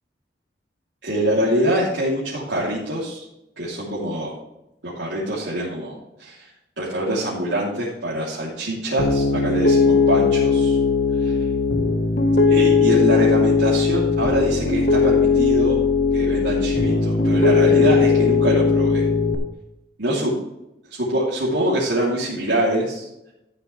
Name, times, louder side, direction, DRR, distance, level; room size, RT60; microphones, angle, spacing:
voice 1, 1.0-3.2 3.6-4.3 4.8-6.4 6.8-10.8 11.2-11.3 12.5-15.8 16.1-19.1 20.0-20.3 21.0-23.1, right 1 dB, 75° right, -8 dB, 3.2 m, -24 dB
Piano, 9.0-19.3, left 4 dB, 55° left, 1.4 m, -18 dB
13.5 x 8.0 x 3.3 m, 0.88 s
head